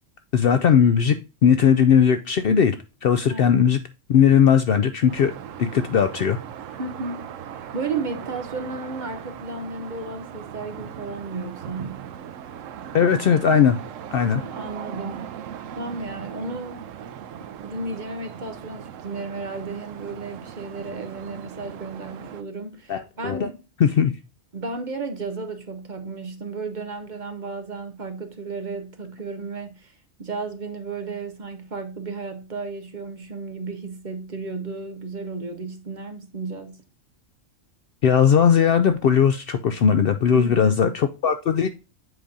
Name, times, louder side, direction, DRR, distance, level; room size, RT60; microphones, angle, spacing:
voice 1, 0.3-1.2 1.4-2.8 3.0-3.8 4.1-5.3 5.6-6.4 12.9-13.8 14.1-14.4 22.9-23.5 23.8-24.1 38.0-41.7, left 7 dB, 60° left, 0.6 m, -18 dB
sound 1, 5.1-22.4, right 9 dB, 90° right, 1.0 m, -39 dB
voice 2, 6.8-12.0 14.2-15.3 15.7-16.9 17.4-23.6 24.5-36.8 40.3-40.8, right 3 dB, 45° right, 0.8 m, -33 dB
7.8 x 5.1 x 2.6 m
omnidirectional pair, 1.3 m